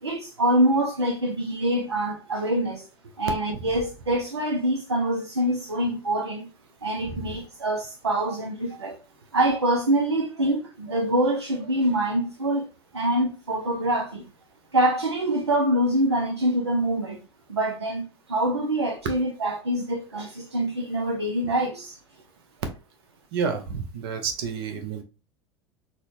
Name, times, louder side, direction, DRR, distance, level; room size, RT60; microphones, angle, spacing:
voice 1, 0.0-2.9 3.2-6.5 6.8-9.0 9.3-12.7 12.9-14.3 14.7-17.2 17.5-22.0, right 1 dB, 85° right, 0.5 m, -25 dB
voice 2, 7.0-7.4 23.3-25.0, right 6 dB, 60° right, 0.8 m, -30 dB
4.0 x 2.2 x 3.1 m
figure-of-eight pair, 75°, 14 cm